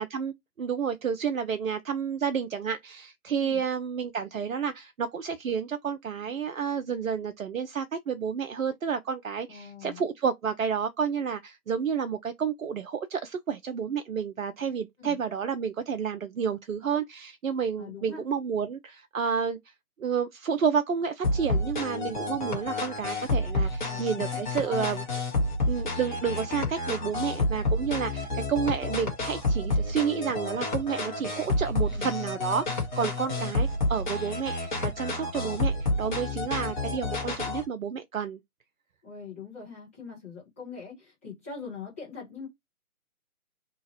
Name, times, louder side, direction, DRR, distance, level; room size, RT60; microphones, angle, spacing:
voice 1, 0.0-19.7 20.0-25.0 25.7-38.4, right 7 dB, 65° right, 0.5 m, -30 dB
voice 2, 9.5-10.0 15.0-15.2 17.8-18.2 23.8-24.4 24.6-24.8 31.9-32.1 39.0-42.5, left 5 dB, 10° left, 0.8 m, -42 dB
sound 1, 21.2-37.6, left 2 dB, 30° left, 1.0 m, -29 dB
2.7 x 2.4 x 2.8 m
figure-of-eight pair, 145°, 44 cm